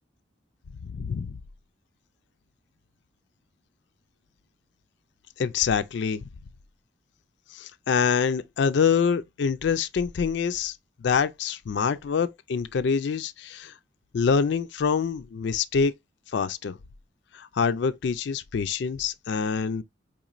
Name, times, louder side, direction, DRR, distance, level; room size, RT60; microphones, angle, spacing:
voice 1, 0.8-1.4 5.4-6.2 7.5-10.7 11.0-13.7 14.1-15.9 16.3-16.7 17.3-19.8, left 6 dB, 60° left, 0.4 m, -25 dB
4.8 x 3.0 x 2.5 m
head